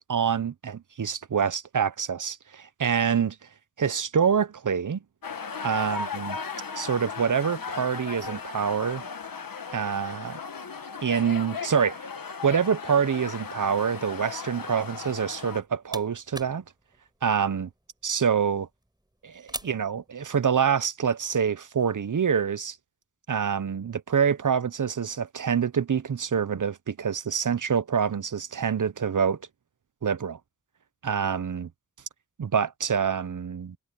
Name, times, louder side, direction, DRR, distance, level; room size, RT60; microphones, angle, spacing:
voice 1, 0.0-3.4 3.8-5.0 5.6-6.4 6.8-9.0 9.7-10.4 11.0-12.0 12.4-16.6 17.2-17.7 18.0-18.7 19.2-22.8 23.3-29.4 30.0-30.4 31.0-31.7 32.4-33.8, right 7 dB, 60° right, 0.8 m, -26 dB
sound 1, 5.2-15.6, left 5 dB, 70° left, 1.3 m, -37 dB
sound 2, 15.4-20.7, right 1 dB, 10° right, 7.2 m, -45 dB
wide cardioid pair, 85°, 36 cm